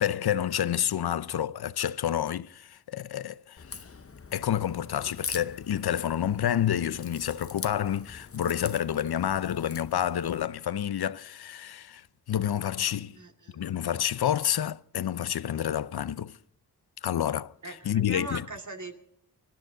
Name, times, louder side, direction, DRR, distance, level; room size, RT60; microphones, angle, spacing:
voice 1, 0.0-3.8 4.3-13.2 13.5-16.4 17.0-17.5 17.9-18.5, left 10 dB, 70° left, 0.6 m, -29 dB
Crack, 3.6-10.5, left 5 dB, 35° left, 0.8 m, -43 dB
voice 2, 13.1-13.6 17.6-18.9, right 3 dB, 50° right, 2.3 m, -40 dB
25.0 x 12.5 x 3.9 m
wide cardioid pair, 90°, 39 cm